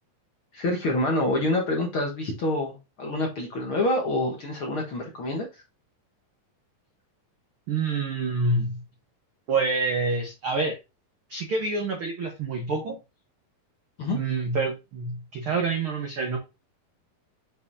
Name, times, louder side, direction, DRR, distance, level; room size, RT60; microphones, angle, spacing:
voice 1, 0.5-5.6 14.0-14.2, left 1 dB, 55° left, 1.5 m, -27 dB
voice 2, 7.7-8.8 9.5-10.8 11.3-13.0 14.1-16.4, right 3 dB, 70° right, 1.2 m, -27 dB
7.1 x 5.3 x 2.6 m
omnidirectional pair, 4.0 m